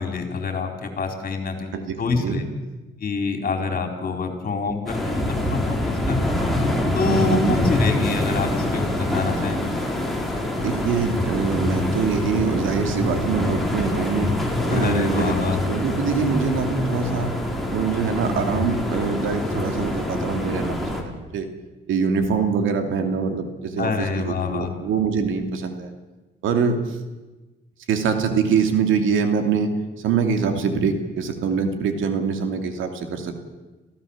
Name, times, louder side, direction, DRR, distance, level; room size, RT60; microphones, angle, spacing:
voice 1, 0.0-2.5 3.0-6.4 6.9-9.6 14.7-15.6 23.8-24.7, left 4 dB, 45° left, 4 dB, 4.3 m, -26 dB
voice 2, 1.7-2.5 7.1-7.6 10.6-14.3 14.7-17.3 17.7-21.5 21.9-25.9 26.4-27.0 27.9-29.7 30.0-33.4, right 5 dB, 80° right, 6 dB, 2.8 m, -24 dB
sound 1, 4.9-21.0, left 1 dB, ahead, 4.5 m, -25 dB
27.0 x 15.5 x 7.3 m, 1.2 s
cardioid pair, 90°, 20 cm